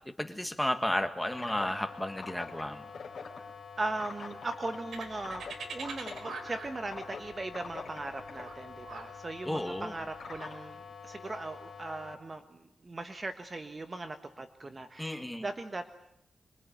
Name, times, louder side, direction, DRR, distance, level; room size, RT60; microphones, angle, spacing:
voice 1, 0.2-2.8 9.4-9.9 15.0-15.4, left 1 dB, 5° left, 7 dB, 1.7 m, -32 dB
sound 1, 1.2-12.1, left 5 dB, 55° left, 3.7 m, -45 dB
voice 2, 3.8-15.9, right 2 dB, 25° right, 7 dB, 1.4 m, -39 dB
sound 2, 4.9-10.5, right 4 dB, 70° right, 5.1 m, -44 dB
25.0 x 23.5 x 9.3 m, 0.77 s
wide cardioid pair, 155°, 0 cm